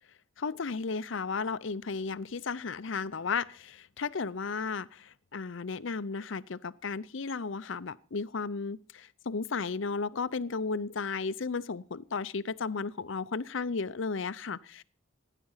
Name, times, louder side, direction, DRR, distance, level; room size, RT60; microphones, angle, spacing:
voice 1, 0.4-14.8, left 4 dB, 70° left, 15 dB, 0.6 m, -34 dB
17.5 x 10.0 x 5.6 m, 0.41 s
head